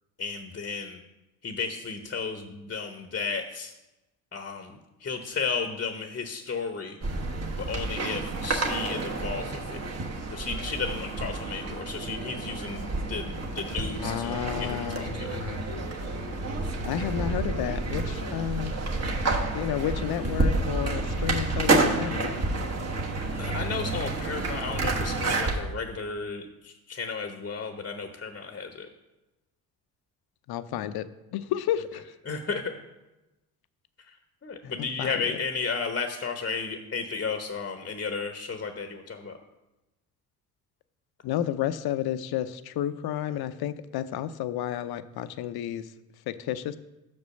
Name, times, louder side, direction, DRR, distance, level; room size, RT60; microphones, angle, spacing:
voice 1, 0.2-1.0 1.4-3.7 4.3-7.0 7.6-9.8 10.3-15.4 18.1-18.3 23.4-28.9 32.3-32.7 34.4-39.4, left 5 dB, 30° left, 6 dB, 0.8 m, -33 dB
sound 1, 7.0-25.6, right 2 dB, 35° right, 1.3 m, -29 dB
voice 2, 14.0-15.7 16.8-18.8 19.5-22.4 30.5-31.1 31.3-32.0 34.6-35.4 41.2-45.9 46.3-46.8, left 11 dB, 60° left, 12 dB, 0.6 m, -31 dB
6.0 x 5.3 x 6.4 m, 1.0 s
supercardioid pair, 65°, 42 cm